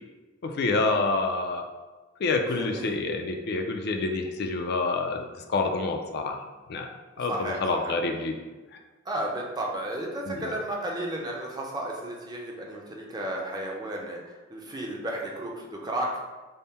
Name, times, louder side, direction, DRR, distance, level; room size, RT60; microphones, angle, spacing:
voice 1, 0.4-1.6 2.2-6.4 6.7-6.9 7.2-8.3 10.3-10.5, left 3 dB, 55° left, 4 dB, 0.4 m, -27 dB
voice 2, 2.5-3.0 7.3-8.0 9.1-16.1, right 1 dB, 20° right, -1 dB, 0.5 m, -33 dB
3.6 x 2.0 x 4.1 m, 1.2 s
head